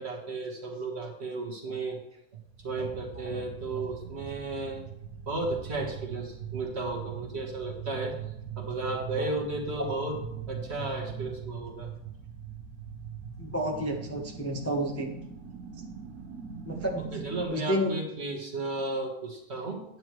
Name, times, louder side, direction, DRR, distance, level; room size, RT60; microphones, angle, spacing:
voice 1, 0.0-2.0 2.6-4.8 5.3-8.1 8.5-10.2 10.5-11.9 17.0-19.8, right 2 dB, 40° right, 1 dB, 1.6 m, -34 dB
sound 1, 2.4-17.4, right 7 dB, 60° right, 1.3 m, -41 dB
voice 2, 13.4-15.1 16.6-17.0 17.5-18.0, equal, 10° left, 0 dB, 0.8 m, -30 dB
9.8 x 9.4 x 3.1 m, 0.80 s
omnidirectional pair, 1.7 m